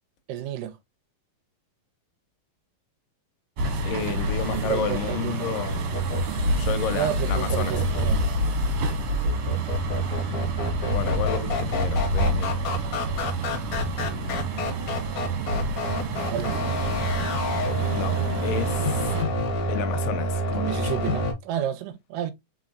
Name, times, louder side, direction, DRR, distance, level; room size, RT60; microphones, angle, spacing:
voice 1, 0.3-0.7 4.4-5.6 6.9-8.3 16.3-16.6 20.5-22.3, right 10 dB, 80° right, 2.1 m, -31 dB
sound 1, 3.6-19.2, right 1 dB, 65° right, 1.9 m, -29 dB
voice 2, 3.8-5.8 6.6-7.8 10.9-12.6 17.9-18.2 18.4-19.1 19.7-20.9, left 9 dB, 80° left, 2.2 m, -31 dB
sound 2, 5.9-21.3, equal, 65° left, 1.6 m, -28 dB
4.5 x 4.1 x 2.5 m
omnidirectional pair, 4.1 m